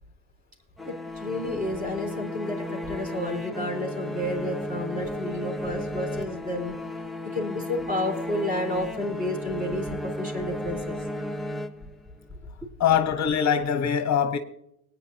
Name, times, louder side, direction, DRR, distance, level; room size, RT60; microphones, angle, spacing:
sound 1, 0.8-12.3, left 1 dB, ahead, 0.6 m, -34 dB
voice 1, 0.8-6.8 7.2-11.0, left 1 dB, 20° right, 4.0 m, -31 dB
voice 2, 12.8-14.4, left 8 dB, 40° left, 1.0 m, -23 dB
20.0 x 9.5 x 2.8 m
supercardioid pair, 110°, 42 cm